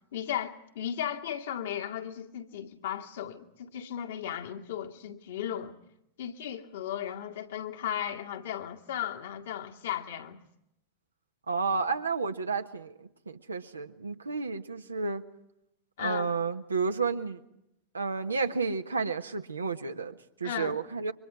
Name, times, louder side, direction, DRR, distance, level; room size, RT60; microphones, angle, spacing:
voice 1, 0.1-5.7 6.2-10.4 16.0-16.3 20.4-20.8, left 10 dB, 60° left, 2.0 m, -36 dB
voice 2, 11.5-15.2 16.0-17.4 17.9-21.1, right 4 dB, 75° right, 1.4 m, -31 dB
29.5 x 24.0 x 4.9 m
figure-of-eight pair, 90°, 0 cm